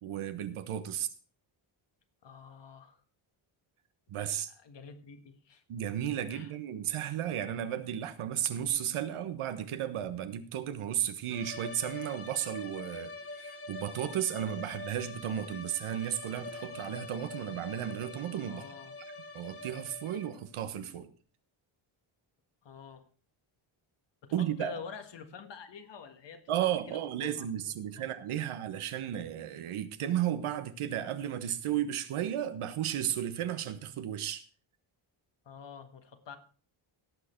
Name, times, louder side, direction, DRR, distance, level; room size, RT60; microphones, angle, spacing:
voice 1, 0.0-1.1 4.1-4.5 5.7-18.6 19.3-21.1 24.3-24.7 26.5-34.4, right 10 dB, 80° right, 1.3 m, -34 dB
voice 2, 2.2-3.0 4.5-5.6 6.3-6.5 18.5-18.9 19.3-19.4 22.6-23.1 24.2-28.1 35.5-36.4, left 6 dB, 55° left, 1.8 m, -48 dB
sound 1, 11.3-20.5, left 2 dB, 30° left, 1.1 m, -45 dB
17.0 x 6.6 x 4.5 m
cardioid pair, 105°, 49 cm